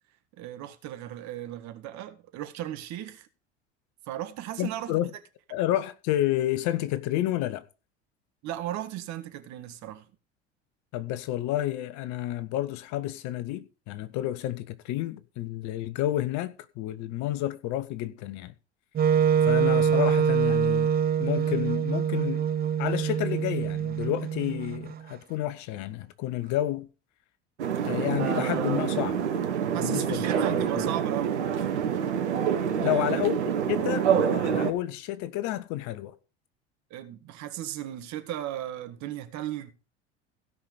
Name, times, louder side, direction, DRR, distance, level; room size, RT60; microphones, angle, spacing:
voice 1, 0.4-3.3 4.1-5.0 5.6-5.7 8.4-10.1 29.7-31.4 32.8-33.2 36.9-39.7, right 12 dB, 55° right, 1.7 m, -36 dB
voice 2, 4.6-5.1 5.5-7.6 10.9-18.5 19.5-20.9 21.2-22.4 22.8-26.9 27.8-29.2 29.7-30.2 32.8-33.4 33.7-36.1, left 14 dB, 55° left, 1.3 m, -30 dB
Wind instrument woodwind instrument, 19.0-25.0, right 7 dB, 25° right, 0.7 m, -25 dB
sound 1, 27.6-34.7, right 8 dB, 80° right, 1.4 m, -27 dB
16.5 x 5.9 x 5.0 m
hypercardioid pair, 75°, 34 cm